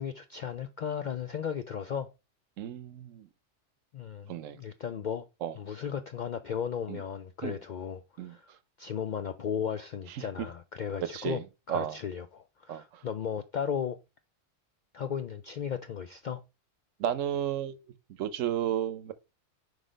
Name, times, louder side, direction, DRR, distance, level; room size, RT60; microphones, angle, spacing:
voice 1, 0.0-2.1 3.9-5.3 5.5-8.5 8.8-11.4 11.7-14.0 14.9-16.4, left 8 dB, 70° left, 0.4 m, -35 dB
voice 2, 2.6-3.3 4.3-4.6 5.4-5.5 6.9-7.0 7.4-7.6 8.2-8.4 10.1-10.5 11.1-11.4 11.7-12.0 12.7-13.0 17.0-17.8 18.2-19.1, right 10 dB, 85° right, 1.1 m, -33 dB
4.9 x 3.9 x 5.0 m
omnidirectional pair, 1.3 m